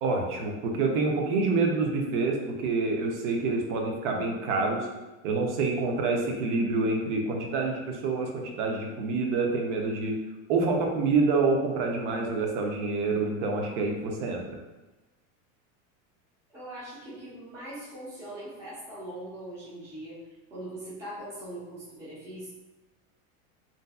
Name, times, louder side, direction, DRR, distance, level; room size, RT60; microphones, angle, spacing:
voice 1, 0.0-4.9 5.2-10.1 10.5-14.4, right 3 dB, 55° right, 1 dB, 0.6 m, -27 dB
voice 2, 16.5-20.2 20.5-22.5, right 1 dB, 5° right, -11 dB, 0.3 m, -41 dB
2.6 x 2.3 x 2.2 m, 1.1 s
supercardioid pair, 165°, 42 cm